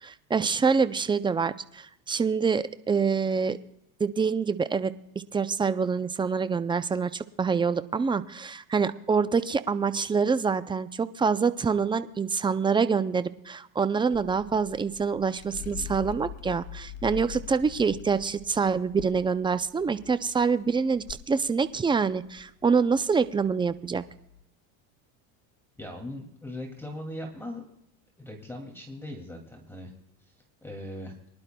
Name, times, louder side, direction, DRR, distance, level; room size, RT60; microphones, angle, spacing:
voice 1, 0.0-3.6 4.0-4.9 5.3-24.0, right 5 dB, 10° right, 13 dB, 0.4 m, -26 dB
sound 1, 14.1-24.4, left 11 dB, 70° left, 0.8 m, -44 dB
voice 2, 25.8-27.6 28.2-29.9 30.3-30.4 30.6-31.1, left 1 dB, 5° left, 2 dB, 2.3 m, -39 dB
24.0 x 11.5 x 2.2 m, 0.80 s
supercardioid pair, 115°, 45 cm